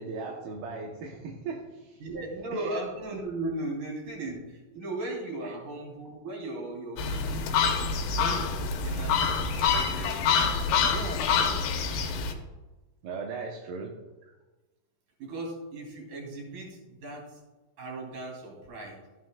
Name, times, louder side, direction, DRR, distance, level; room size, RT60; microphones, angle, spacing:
voice 1, 0.0-2.0 2.5-2.7 13.0-14.0, right 4 dB, 75° right, 0 dB, 2.7 m, -37 dB
voice 2, 2.0-7.9 8.2-11.7 15.2-17.4 17.8-19.0, right 2 dB, 55° right, -2 dB, 4.2 m, -38 dB
sound 1, 7.0-12.3, left 5 dB, 80° left, 3.1 m, -26 dB
14.0 x 9.4 x 2.3 m, 1.1 s
omnidirectional pair, 4.9 m